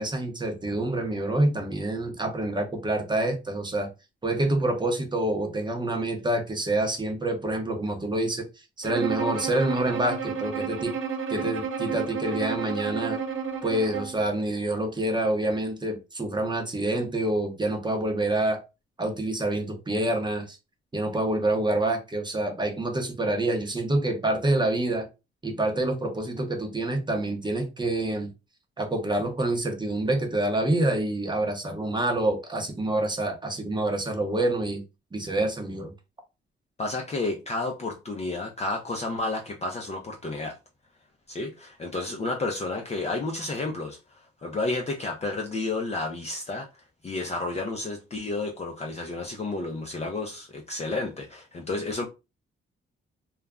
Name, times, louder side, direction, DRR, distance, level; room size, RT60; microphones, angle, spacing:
voice 1, 0.0-3.9 4.2-10.9 11.3-13.2 13.6-18.6 19.0-20.6 20.9-25.1 25.4-28.3 28.8-34.8 35.1-35.9, right 1 dB, 20° right, 0.7 m, -27 dB
Bowed string instrument, 8.8-14.3, right 6 dB, 75° right, 0.6 m, -31 dB
voice 2, 36.8-40.6 41.3-44.0 44.4-46.7 47.0-52.0, left 2 dB, 30° left, 0.5 m, -31 dB
2.3 x 2.0 x 3.5 m
cardioid pair, 95°, 21 cm